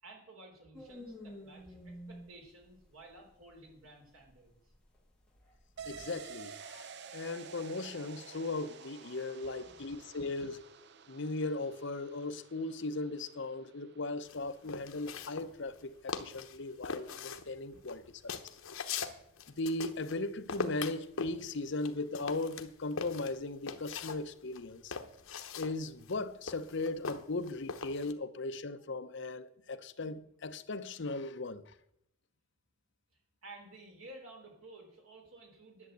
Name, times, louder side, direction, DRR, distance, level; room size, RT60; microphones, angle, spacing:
voice 1, 0.0-4.7 9.6-9.8 17.7-17.9 33.4-35.9, right 2 dB, 85° right, 4.0 m, -54 dB
sound 1, 0.7-6.0, equal, 5° left, 2.5 m, -51 dB
sound 2, 5.8-15.2 15.5-15.6, right 6 dB, 55° right, 0.6 m, -51 dB
voice 2, 5.9-10.6 11.1-18.6 19.6-24.9 25.5-31.7, left 2 dB, 60° left, 0.8 m, -38 dB
sound 3, 14.3-15.8 16.1-16.6 16.8-20.2 20.5-24.2 24.5-28.1, left 5 dB, 80° left, 1.0 m, -41 dB
11.0 x 7.9 x 8.0 m
head